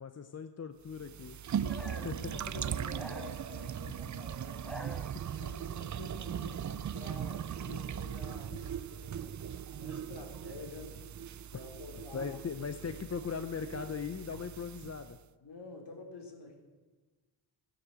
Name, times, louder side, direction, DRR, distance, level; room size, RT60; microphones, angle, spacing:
voice 1, 0.0-1.4 2.0-2.4 5.1-5.4 8.5-8.6 12.1-15.2, left 6 dB, 35° left, 9 dB, 0.8 m, -39 dB
sound 1, 0.9-15.2, right 9 dB, 40° right, 0.5 m, -39 dB
voice 2, 1.6-5.0 5.4-9.5 9.8-11.0 11.5-12.4 15.4-16.6, left 3 dB, 60° left, 2 dB, 3.9 m, -49 dB
sound 2, 1.7-2.2 2.9-3.9 4.5-5.5, equal, ahead, 1.2 m, -47 dB
16.0 x 10.0 x 7.7 m, 1.3 s
cardioid pair, 100°, 46 cm